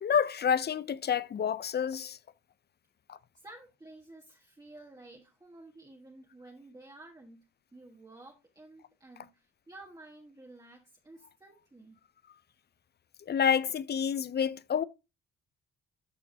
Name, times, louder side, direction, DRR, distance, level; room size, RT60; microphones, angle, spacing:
voice 1, 0.0-2.2 3.1-3.2 13.3-14.8, left 7 dB, 35° left, 0.5 m, -28 dB
voice 2, 3.3-7.4 7.7-12.0, right 2 dB, 10° right, 1.4 m, -52 dB
13.0 x 4.5 x 2.7 m
cardioid pair, 90°, 30 cm